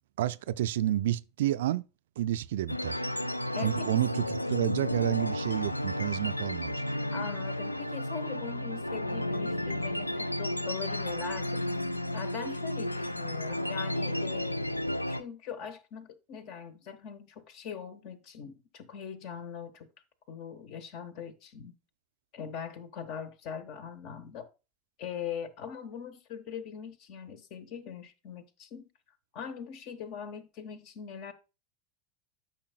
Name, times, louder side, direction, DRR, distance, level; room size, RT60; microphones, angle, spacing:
voice 1, 0.2-1.8 2.2-3.0 3.6-6.8, right 12 dB, 60° right, 0.3 m, -30 dB
sound 1, 2.7-15.2, left 1 dB, 85° left, 0.4 m, -33 dB
voice 2, 3.5-4.0 7.1-11.6 12.1-14.7 15.1-19.9 20.3-21.8 22.3-24.5 25.0-28.9 29.3-31.3, left 7 dB, 50° left, 1.0 m, -41 dB
12.0 x 5.7 x 2.2 m
figure-of-eight pair, 80°, 0 cm